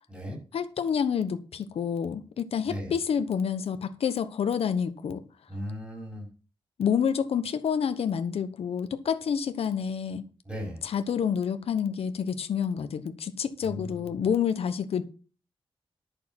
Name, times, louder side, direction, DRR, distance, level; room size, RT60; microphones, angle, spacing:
voice 1, 0.5-5.2 6.8-10.2 10.8-15.0, left 7 dB, 80° left, 1.1 m, -28 dB
voice 2, 5.5-6.3 10.5-10.8 13.6-14.2, equal, 15° right, 5.8 m, -37 dB
11.5 x 6.6 x 5.9 m
wide cardioid pair, 180°, 10 cm